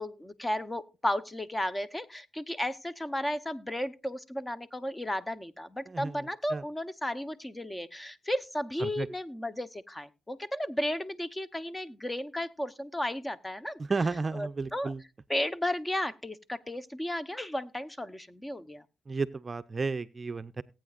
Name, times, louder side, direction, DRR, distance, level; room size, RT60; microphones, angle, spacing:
voice 1, 0.0-13.8 14.3-14.9 15.3-18.8, left 1 dB, 15° left, 13 dB, 1.0 m, -34 dB
voice 2, 5.9-6.2 6.5-6.6 8.8-9.1 13.8-15.0 19.1-20.6, right 4 dB, 35° right, 12 dB, 0.6 m, -32 dB
18.5 x 8.9 x 2.5 m, 0.28 s
cardioid pair, 65°, 0 cm